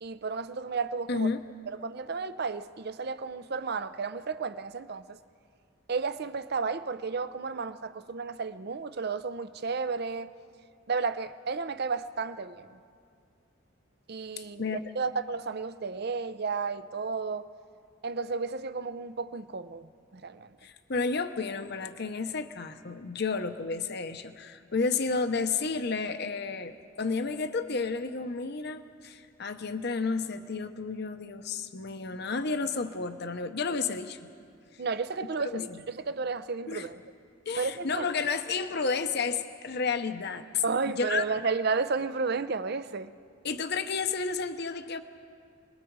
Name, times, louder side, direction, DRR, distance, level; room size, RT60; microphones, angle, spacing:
voice 1, 0.0-1.3 1.7-5.2 5.9-10.3 10.9-12.7 14.1-17.5 18.0-20.6 34.8-37.0 37.6-38.1 40.6-43.1, right 4 dB, 55° right, 0.6 m, -32 dB
voice 2, 1.1-1.4 14.6-14.8 20.6-34.2 35.5-35.8 36.7-36.9 37.5-40.6 41.0-41.2 43.4-45.0, left 4 dB, 55° left, 0.8 m, -31 dB
29.5 x 21.5 x 4.7 m
head